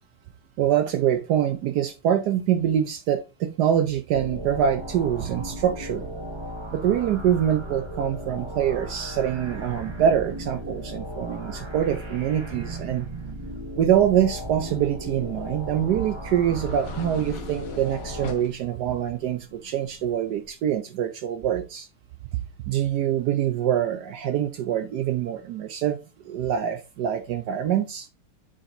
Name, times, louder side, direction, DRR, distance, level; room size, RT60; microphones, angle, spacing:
voice 1, 0.6-6.1 6.7-13.1 13.7-21.9 22.6-28.1, right 10 dB, 75° right, 0.9 m, -25 dB
sound 1, 4.1-18.3, equal, 35° right, 0.4 m, -36 dB
sound 2, 15.0-20.5, left 5 dB, 55° left, 1.0 m, -43 dB
7.7 x 4.9 x 2.6 m
omnidirectional pair, 2.3 m